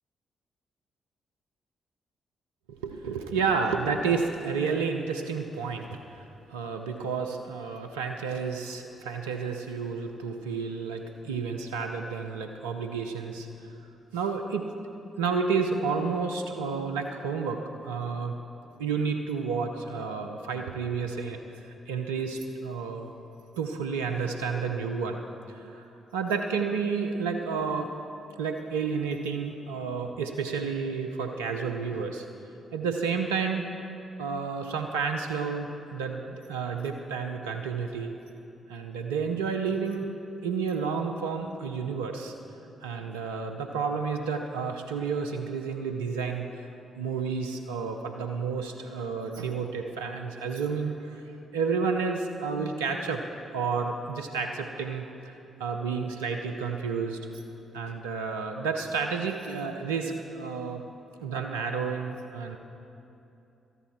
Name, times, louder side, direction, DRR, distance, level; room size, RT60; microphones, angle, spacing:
voice 1, 2.7-13.7 14.1-14.7 15.2-18.4 18.8-21.4 21.9-23.1 23.6-25.2 25.5-25.9 26.1-27.9 28.4-32.3 32.7-33.7 34.2-38.1 38.7-40.1 40.4-42.3 42.8-46.5 46.9-53.2 53.5-55.3 55.6-57.2 57.7-60.9 61.2-62.6, right 5 dB, 90° right, 4 dB, 0.7 m, -31 dB
18.0 x 13.5 x 4.4 m, 2.8 s
hypercardioid pair, 45°, 0 cm